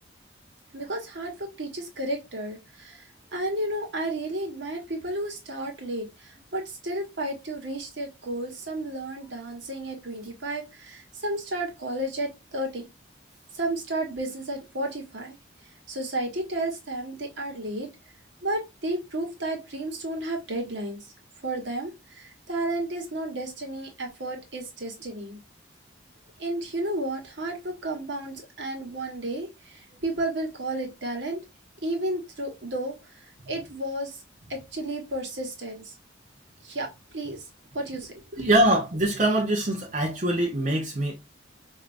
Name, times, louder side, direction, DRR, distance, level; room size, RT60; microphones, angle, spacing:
voice 1, 0.7-3.1 3.3-12.8 13.5-15.4 15.9-17.9 18.4-21.1 21.4-25.4 26.4-31.4 31.8-34.2 34.5-35.9 36.6-37.4 37.7-38.5, right 1 dB, 70° right, 1.3 m, -32 dB
voice 2, 38.4-41.2, right 1 dB, 40° right, 0.7 m, -23 dB
4.6 x 2.7 x 2.5 m
head